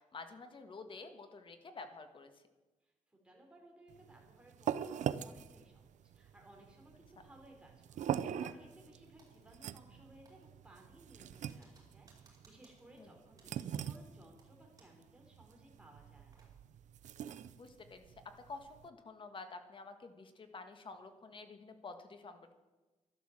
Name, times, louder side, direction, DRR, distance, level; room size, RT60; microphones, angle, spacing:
voice 1, 0.1-2.3 13.0-13.1 17.6-18.0 18.5-22.5, left 3 dB, 40° left, 8 dB, 1.6 m, -50 dB
voice 2, 2.8-16.5, right 1 dB, 5° right, -1 dB, 4.7 m, -61 dB
sound 1, 3.9-18.9, right 9 dB, 75° right, 0.6 m, -43 dB
Typing, 9.2-10.0 10.3-15.1 15.4-15.5 15.9-16.5, right 3 dB, 25° right, 5.3 m, -68 dB
12.0 x 12.0 x 7.6 m, 1.2 s
cardioid pair, 115°, 13 cm